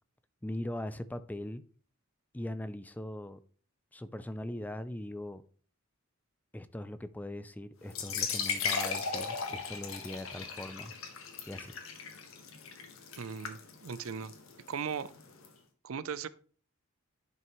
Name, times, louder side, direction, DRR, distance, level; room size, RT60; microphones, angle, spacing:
voice 1, 0.4-1.6 2.3-3.4 3.9-5.4 6.5-10.9 11.5-11.7, left 1 dB, 10° left, 0.4 m, -40 dB
sound 1, 7.9-15.5, left 5 dB, 75° left, 1.5 m, -37 dB
voice 2, 13.2-14.3 14.7-15.1 15.8-16.3, right 6 dB, 75° right, 0.5 m, -38 dB
11.0 x 5.8 x 3.1 m
head